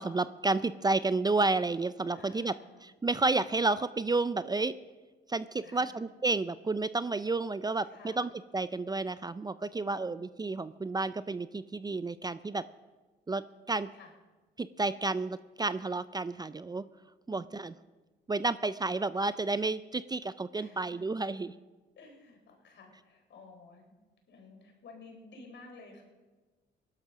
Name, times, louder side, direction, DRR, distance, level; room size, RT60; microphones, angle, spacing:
voice 1, 0.0-2.5 2.8-4.7 5.3-12.6 13.3-13.9 14.6-16.9 17.3-17.7 18.3-21.5, right 3 dB, 20° right, 15 dB, 0.5 m, -31 dB
voice 2, 2.1-2.8 5.6-6.0 7.8-8.2 9.8-10.4 13.9-14.1 17.3-17.7 20.6-21.6 22.0-23.9 24.3-26.0, left 3 dB, 65° left, 2 dB, 4.4 m, -53 dB
17.0 x 11.5 x 6.2 m, 1.2 s
cardioid pair, 90°, 20 cm